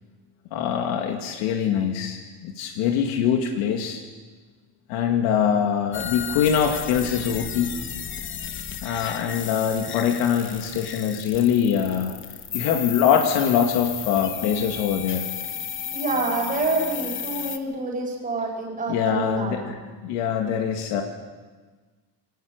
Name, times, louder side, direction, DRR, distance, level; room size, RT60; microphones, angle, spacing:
voice 1, 0.5-4.0 4.9-7.7 8.8-12.1 12.5-15.2 18.9-19.8 20.0-21.0, left 8 dB, 80° left, 3 dB, 2.2 m, -23 dB
sound 1, 5.9-17.6, left 8 dB, 25° left, 0.9 m, -34 dB
voice 2, 15.9-19.7, right 3 dB, 20° right, -4 dB, 4.3 m, -27 dB
22.5 x 18.5 x 6.6 m, 1.4 s
cardioid pair, 165°, 46 cm